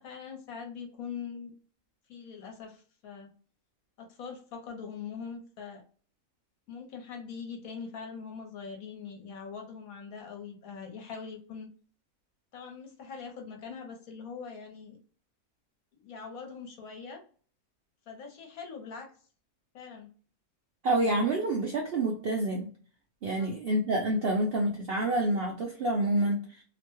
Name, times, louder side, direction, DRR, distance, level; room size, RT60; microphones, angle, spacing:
voice 1, 0.0-1.5 2.1-3.3 4.0-5.8 6.7-11.7 12.5-15.0 15.9-17.2 18.1-19.1 19.7-20.1 23.4-23.5, left 6 dB, 70° left, 3 dB, 1.2 m, -42 dB
voice 2, 20.8-22.7 23.2-26.6, right 1 dB, 65° right, -1 dB, 0.6 m, -28 dB
2.9 x 2.1 x 3.0 m, 0.42 s
omnidirectional pair, 1.6 m